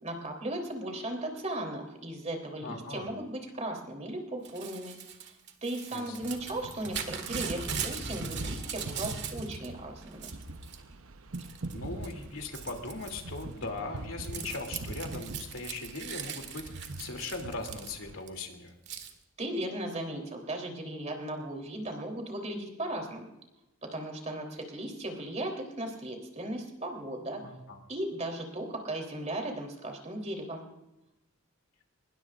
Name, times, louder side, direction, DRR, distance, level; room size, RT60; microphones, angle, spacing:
voice 1, 0.0-5.0 5.6-10.3 19.4-23.3 23.8-27.4 27.9-30.7, right 1 dB, 30° right, 2 dB, 3.3 m, -36 dB
voice 2, 2.6-3.1 5.9-6.1 11.7-18.7 27.4-27.8, left 3 dB, 70° left, 3 dB, 2.8 m, -39 dB
Crumpling crinkling / Tearing, 4.4-9.7 10.0-10.8 11.3-11.7 12.0-18.3 18.9-19.1, right 7 dB, 55° right, 2.0 m, -40 dB
sound 1, 6.2-18.2, right 2 dB, 70° right, 0.9 m, -43 dB
24.5 x 21.5 x 2.5 m, 0.97 s
head